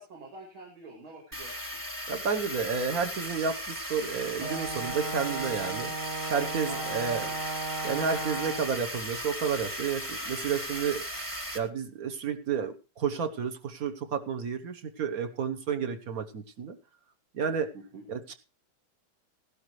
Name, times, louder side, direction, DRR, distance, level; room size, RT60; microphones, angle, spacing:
voice 1, 0.0-1.5 6.7-7.4 17.7-18.0, right 2 dB, 70° right, -3 dB, 3.5 m, -46 dB
sound 1, 1.3-11.6, equal, 10° right, 1.3 m, -37 dB
voice 2, 2.1-7.3 7.8-11.0 11.5-16.8 17.3-17.7 18.1-18.3, right 6 dB, 50° right, 8 dB, 1.3 m, -31 dB
Brass instrument, 4.4-8.8, right 3 dB, 30° right, 1.0 m, -36 dB
16.5 x 12.0 x 3.2 m, 0.29 s
omnidirectional pair, 2.3 m